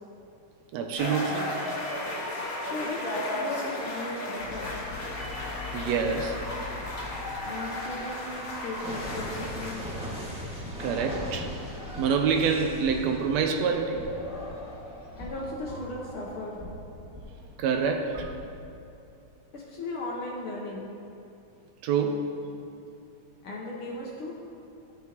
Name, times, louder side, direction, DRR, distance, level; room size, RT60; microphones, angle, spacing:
voice 1, 0.7-1.6 5.7-6.5 8.3-8.4 10.8-11.6 12.0-14.1 17.6-18.4 21.8-22.3, right 5 dB, 80° right, 5 dB, 1.6 m, -27 dB
sound 1, 1.0-9.7, left 1 dB, 40° left, 3.1 m, -35 dB
voice 2, 2.6-4.7 7.4-9.8 15.2-16.6 19.5-20.9 23.4-24.4, left 2 dB, 70° left, -3 dB, 1.3 m, -36 dB
sound 2, 4.4-18.6, left 1 dB, 5° right, 0.7 m, -39 dB
16.5 x 6.2 x 2.9 m, 2.6 s
omnidirectional pair, 3.5 m